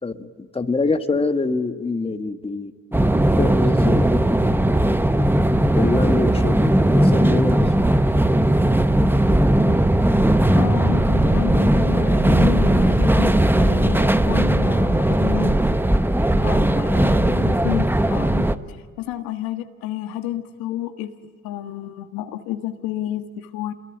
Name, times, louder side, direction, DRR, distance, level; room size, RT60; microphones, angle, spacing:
voice 1, 0.0-3.0 3.4-4.4 5.7-7.6, left 3 dB, 15° left, 7 dB, 1.6 m, -25 dB
sound 1, 2.9-18.6, right 1 dB, 5° right, 1.0 m, -18 dB
voice 2, 10.5-15.6 16.4-21.1 21.4-23.7, left 12 dB, 75° left, 7 dB, 1.5 m, -30 dB
28.0 x 22.0 x 8.9 m, 1.5 s
supercardioid pair, 75°, 36 cm